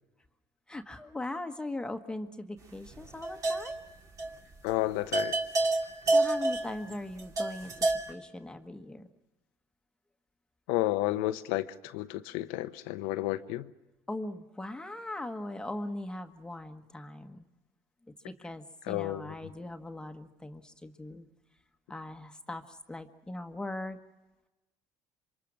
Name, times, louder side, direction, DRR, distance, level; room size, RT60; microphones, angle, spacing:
voice 1, 0.7-3.8 6.0-9.1 14.1-17.4 18.2-21.3 21.9-24.0, left 1 dB, 10° left, 1.4 m, -40 dB
sound 1, 2.9-3.9 4.2-4.4 4.7-4.8 5.1-8.1, right 2 dB, 40° right, 2.4 m, -29 dB
voice 2, 4.6-5.4 10.7-13.7 18.8-19.5, left 16 dB, 85° left, 0.9 m, -32 dB
27.0 x 24.0 x 6.2 m
supercardioid pair, 85°, 9 cm